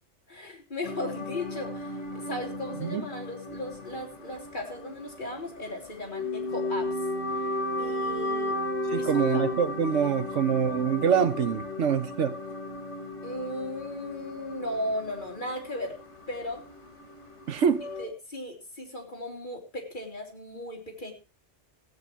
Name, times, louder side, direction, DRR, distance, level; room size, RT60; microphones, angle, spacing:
voice 1, 0.3-6.9 7.4-7.5 7.8-8.6 8.9-9.5 13.2-16.0 16.3-16.6 18.0-21.1, left 1 dB, 40° left, 3.0 m, -36 dB
sound 1, 0.8-18.1, left 2 dB, 70° left, 2.3 m, -35 dB
voice 2, 8.9-12.4 17.5-17.8, right 7 dB, 85° right, 1.2 m, -25 dB
16.0 x 8.5 x 4.4 m
omnidirectional pair, 1.2 m